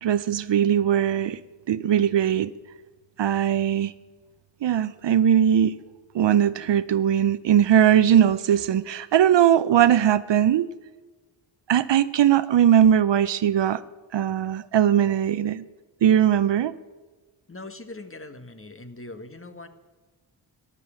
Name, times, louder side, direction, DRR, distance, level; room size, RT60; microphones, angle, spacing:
voice 1, 0.0-1.4 1.7-2.5 3.2-3.9 4.6-5.7 6.1-10.7 11.7-13.8 14.1-15.6 16.0-16.7, right 10 dB, 60° right, 16 dB, 0.7 m, -20 dB
voice 2, 17.5-19.7, left 2 dB, 25° left, 9 dB, 1.7 m, -41 dB
13.5 x 11.5 x 8.9 m, 1.3 s
cardioid pair, 50°, 48 cm